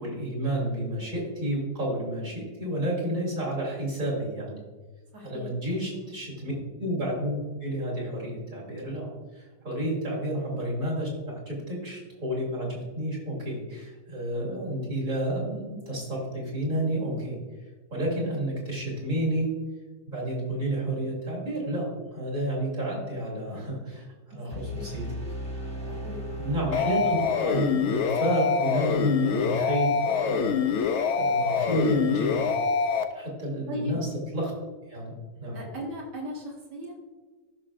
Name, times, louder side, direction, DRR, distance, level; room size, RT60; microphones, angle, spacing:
voice 1, 0.0-4.6 5.2-6.5 6.8-7.3 7.6-9.1 9.4-17.4 17.9-19.5 20.1-25.1 26.4-30.9 31.1-32.6 33.1-34.5 34.9-35.1 35.4-35.6, right 1 dB, 50° right, -4 dB, 3.3 m, -30 dB
voice 2, 5.1-5.5 24.5-24.9 25.9-26.3 33.7-34.0 35.5-37.0, left 1 dB, 70° right, -2 dB, 2.4 m, -37 dB
sound 1, 24.5-27.6, equal, 5° left, 1.1 m, -37 dB
sound 2, 26.7-33.0, left 6 dB, 65° left, 0.7 m, -25 dB
14.5 x 6.2 x 2.5 m, 1.3 s
omnidirectional pair, 1.8 m